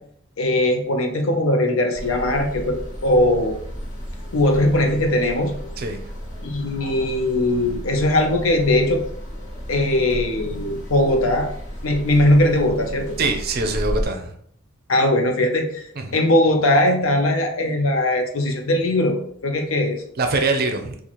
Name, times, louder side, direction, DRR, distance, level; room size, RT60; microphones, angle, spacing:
voice 1, 0.4-2.8 3.0-3.6 4.3-5.5 6.4-9.0 9.7-11.5 11.8-13.2 14.9-15.8 16.1-19.2 19.4-20.0, left 1 dB, 80° left, 3 dB, 0.7 m, -19 dB
sound 1, 1.9-14.0, equal, 35° left, 1.3 m, -33 dB
voice 2, 5.8-6.1 13.2-14.3 16.0-16.2 20.2-21.0, right 3 dB, 45° right, 5 dB, 0.5 m, -23 dB
4.0 x 2.4 x 3.0 m, 0.66 s
head